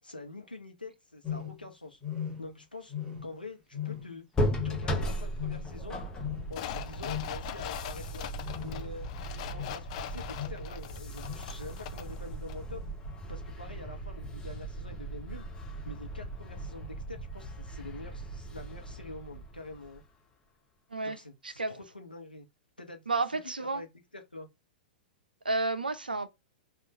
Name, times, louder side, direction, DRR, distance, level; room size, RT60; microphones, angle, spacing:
voice 1, 0.0-2.0 2.4-2.9 3.2-4.2 4.6-6.0 6.5-8.3 8.6-9.1 9.3-12.8 13.3-15.5 15.8-20.0 21.0-22.5 22.8-23.9 24.1-24.5, left 2 dB, 90° left, 0.8 m, -46 dB
sound 1, 1.2-1.7 2.0-2.6 2.9-3.4 3.7-4.2 4.5-5.0 5.3-5.8 6.2-6.5 7.0-7.4 8.4-8.9 9.5-9.8 10.3-10.6 11.2-11.5, left 10 dB, 20° right, 1.5 m, -38 dB
sound 2, 4.3-20.1, right 1 dB, 15° left, 0.8 m, -37 dB
sound 3, 6.5-12.2 12.5-12.6, left 12 dB, 45° left, 0.4 m, -42 dB
voice 2, 23.1-23.8 25.4-26.3, right 3 dB, 80° right, 0.5 m, -31 dB
4.4 x 2.4 x 3.1 m
figure-of-eight pair, 100°, 5 cm